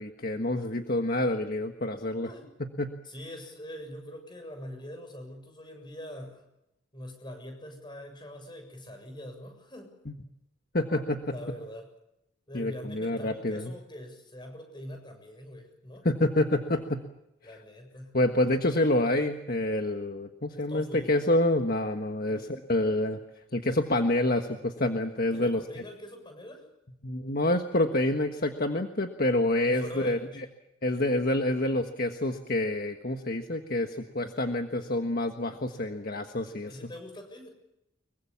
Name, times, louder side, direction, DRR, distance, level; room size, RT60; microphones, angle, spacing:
voice 1, 0.0-2.3 2.6-2.9 10.1-10.2 10.7-11.4 12.5-13.7 16.0-17.0 18.1-23.2 23.5-25.6 27.0-30.4 30.8-36.8, left 1 dB, 45° left, 5 dB, 1.5 m, -27 dB
voice 2, 2.2-2.5 3.0-6.4 6.9-9.9 11.3-11.9 12.5-16.1 17.4-18.2 20.5-21.2 22.3-22.5 25.3-26.7 29.6-30.5 30.9-31.1 36.7-37.5, left 1 dB, 25° left, 6 dB, 7.4 m, -43 dB
25.0 x 23.5 x 7.2 m, 0.84 s
head